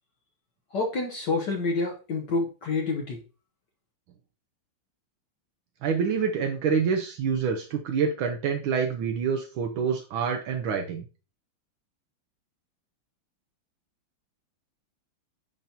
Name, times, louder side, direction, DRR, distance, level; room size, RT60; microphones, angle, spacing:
voice 1, 0.7-3.2, left 3 dB, 60° left, 1 dB, 1.5 m, -28 dB
voice 2, 5.8-11.0, right 6 dB, 75° right, 3 dB, 1.5 m, -27 dB
10.5 x 4.0 x 2.7 m, 0.35 s
omnidirectional pair, 2.4 m